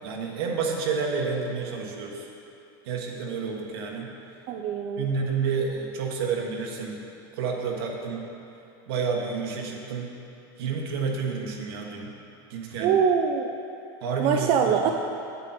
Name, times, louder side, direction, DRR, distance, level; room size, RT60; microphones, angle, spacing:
voice 1, 0.0-2.3 2.8-4.1 5.0-7.0 7.3-8.3 8.9-10.1 10.6-12.1 12.5-13.0 14.0-14.9, right 5 dB, 75° right, 0 dB, 1.4 m, -30 dB
voice 2, 4.5-5.1 12.8-13.5 14.2-14.9, right 7 dB, 45° right, 3 dB, 0.5 m, -23 dB
8.3 x 8.1 x 4.3 m, 2.7 s
supercardioid pair, 125°, 13 cm